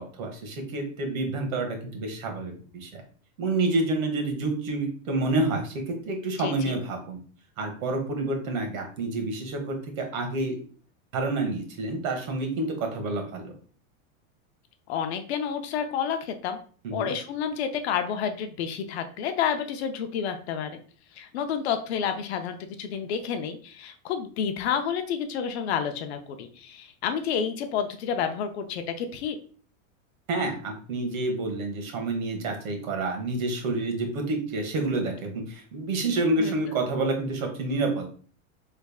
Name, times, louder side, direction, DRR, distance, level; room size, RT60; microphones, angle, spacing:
voice 1, 0.0-3.0 3.4-7.2 7.6-10.6 11.1-13.5 16.8-17.1 30.3-38.1, right 2 dB, 75° right, 3 dB, 1.2 m, -28 dB
voice 2, 6.4-6.8 14.9-16.6 16.9-20.8 21.1-29.4 36.4-36.6, left 7 dB, 55° left, 7 dB, 0.4 m, -30 dB
3.4 x 3.3 x 2.3 m, 0.43 s
supercardioid pair, 175°, 41 cm